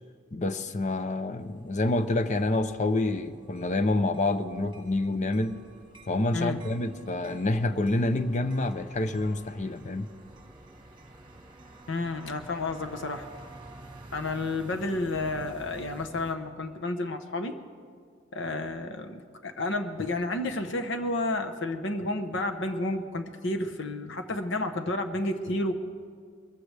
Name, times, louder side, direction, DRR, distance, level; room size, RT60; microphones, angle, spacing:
voice 1, 0.3-5.6 6.1-10.1, left 2 dB, 40° left, 10 dB, 0.6 m, -27 dB
sound 1, 1.4-16.3, right 1 dB, 25° right, 1.5 m, -50 dB
voice 2, 11.9-13.3 14.1-17.6 18.3-25.7, left 2 dB, 65° left, 6 dB, 1.0 m, -31 dB
23.0 x 14.5 x 3.4 m, 2.1 s
head